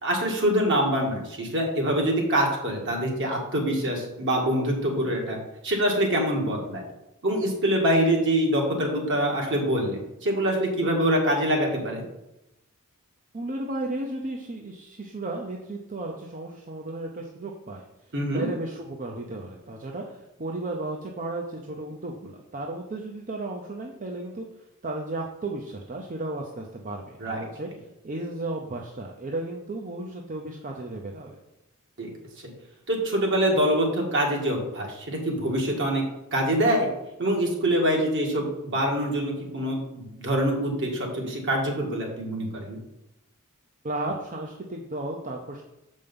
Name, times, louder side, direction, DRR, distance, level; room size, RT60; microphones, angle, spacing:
voice 1, 0.0-5.4 5.6-6.8 7.2-12.0 18.1-18.5 27.2-27.4 32.0-32.1 32.9-36.0 36.3-36.9 37.2-42.8, right 1 dB, 55° right, 0 dB, 2.0 m, -25 dB
voice 2, 13.3-17.8 18.3-24.5 24.8-27.7 28.0-31.4 43.8-45.6, right 2 dB, 35° right, 1 dB, 0.7 m, -34 dB
6.8 x 5.3 x 5.4 m, 0.90 s
head